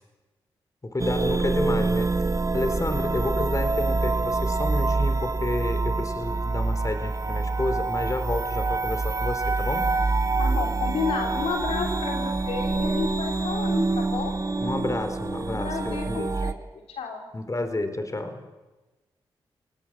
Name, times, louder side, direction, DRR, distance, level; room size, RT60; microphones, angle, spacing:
voice 1, 0.8-2.1 2.5-10.0 14.6-16.4 17.3-18.4, left 2 dB, 35° left, 9 dB, 4.1 m, -30 dB
sound 1, 1.0-16.5, right 3 dB, 35° right, 1.2 m, -26 dB
voice 2, 10.4-14.4 15.5-16.6 17.0-17.3, left 5 dB, 80° left, 3 dB, 3.8 m, -31 dB
30.0 x 19.0 x 8.9 m, 1.2 s
supercardioid pair, 45°, 10 cm